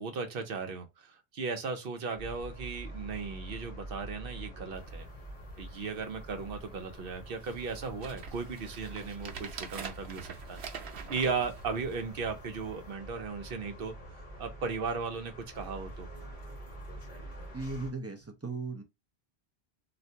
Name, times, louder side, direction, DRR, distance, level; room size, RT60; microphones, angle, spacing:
voice 1, 0.0-5.1 5.6-10.6 11.1-13.9 14.4-16.1, right 5 dB, 65° right, 0.9 m, -36 dB
sound 1, 2.2-17.9, right 1 dB, 35° left, 1.5 m, -46 dB
sound 2, 4.7-4.9 5.4-5.5 5.7-6.2 6.9-7.0 7.4-12.3 12.8-12.9, right 6 dB, 85° right, 0.9 m, -45 dB
voice 2, 17.5-18.8, right 3 dB, 20° right, 0.4 m, -37 dB
3.3 x 2.5 x 2.7 m
omnidirectional pair, 1.1 m